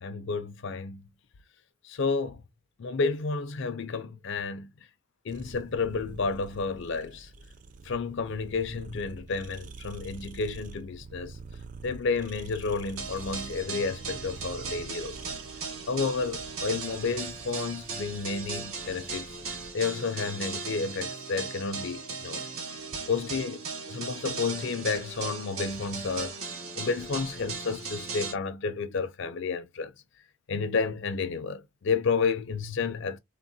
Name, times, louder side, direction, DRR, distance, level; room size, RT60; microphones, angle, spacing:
voice 1, 0.0-1.1 1.8-2.4 2.8-4.7 5.3-7.3 7.8-11.4 11.8-15.3 15.9-19.3 19.7-22.5 23.1-23.6 23.9-26.4 26.8-29.9 30.5-33.2, left 4 dB, 55° left, 0.4 m, -31 dB
sound 1, 5.3-19.7, right 4 dB, 35° right, 0.3 m, -46 dB
sound 2, 13.0-28.3, right 4 dB, 70° right, 1.0 m, -37 dB
3.6 x 2.1 x 2.6 m
head